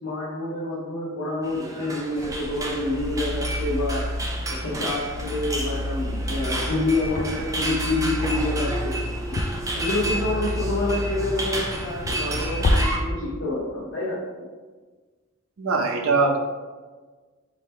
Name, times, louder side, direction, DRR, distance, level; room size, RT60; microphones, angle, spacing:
voice 1, 0.0-4.1 4.5-9.0 9.3-9.4 9.8-14.2, left 2 dB, 75° left, -6 dB, 0.8 m, -28 dB
sound 1, 1.4-13.0, right 1 dB, 15° right, 0.5 m, -32 dB
sound 2, 2.2-12.8, left 1 dB, 45° left, 0.4 m, -30 dB
sound 3, 8.6-13.4, right 3 dB, 50° right, 0.7 m, -42 dB
voice 2, 15.6-16.4, right 3 dB, 90° right, 2 dB, 0.6 m, -21 dB
4.3 x 2.8 x 3.4 m, 1.4 s
head